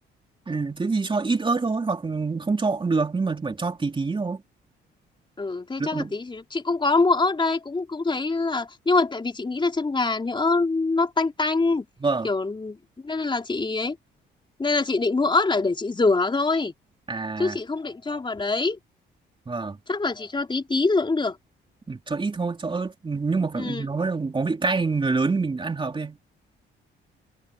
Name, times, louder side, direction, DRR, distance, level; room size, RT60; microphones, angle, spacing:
voice 1, 0.5-4.4 5.8-6.1 12.0-12.3 17.1-17.6 19.5-19.8 21.9-26.2, right 4 dB, 25° right, 3.0 m, -26 dB
voice 2, 5.4-11.9 12.2-12.8 13.0-14.0 14.6-16.7 17.4-18.8 19.9-21.4 23.6-23.8, left 3 dB, 25° left, 3.5 m, -24 dB
cardioid pair, 90°, 20 cm